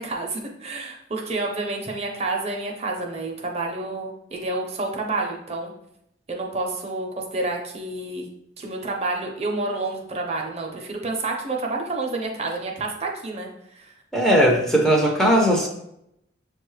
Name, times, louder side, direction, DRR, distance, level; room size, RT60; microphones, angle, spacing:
voice 1, 0.0-5.7 6.3-8.3 8.6-13.9, right 2 dB, 35° right, 1 dB, 0.6 m, -29 dB
voice 2, 14.1-15.7, equal, ahead, -1 dB, 0.6 m, -18 dB
6.8 x 2.3 x 3.1 m, 0.78 s
head